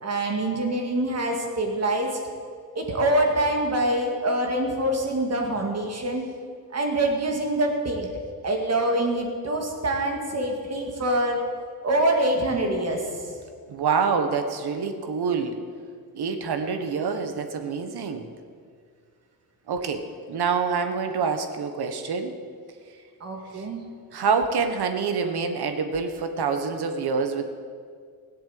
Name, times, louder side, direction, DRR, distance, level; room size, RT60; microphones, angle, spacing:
voice 1, 0.0-2.2 2.8-6.2 6.7-8.1 8.4-11.4 11.8-13.0 23.2-23.8, right 1 dB, 40° right, 2 dB, 2.0 m, -25 dB
voice 2, 13.7-15.6 16.1-18.3 19.7-20.0 20.3-22.3 23.5-23.7 24.1-27.5, right 5 dB, 85° right, 7 dB, 1.5 m, -26 dB
16.5 x 7.9 x 8.5 m, 2.1 s
wide cardioid pair, 175°, 38 cm